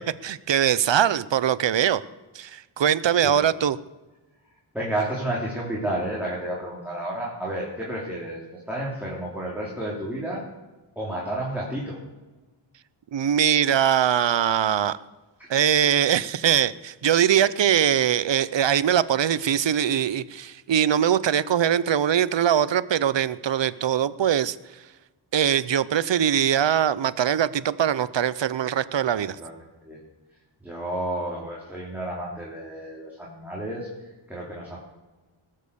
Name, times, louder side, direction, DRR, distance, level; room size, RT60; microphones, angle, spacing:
voice 1, 0.2-2.0 2.3-3.8 13.1-15.0 15.5-24.6 25.3-29.4, right 9 dB, 60° right, 17 dB, 0.7 m, -22 dB
voice 2, 4.7-10.4 10.9-12.0 29.1-29.5 29.8-30.0 30.6-34.8, right 1 dB, 5° right, -5 dB, 3.2 m, -31 dB
20.0 x 7.5 x 6.9 m, 1.2 s
wide cardioid pair, 120°, 49 cm